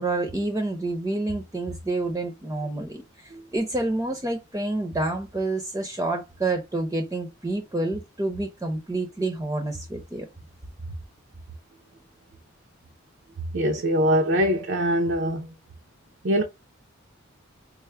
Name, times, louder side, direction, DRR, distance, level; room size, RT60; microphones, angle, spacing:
voice 1, 0.0-10.3, right 2 dB, 15° right, 0.6 m, -28 dB
voice 2, 13.5-15.5 16.2-16.4, equal, 65° right, 0.6 m, -22 dB
4.5 x 2.0 x 3.2 m
head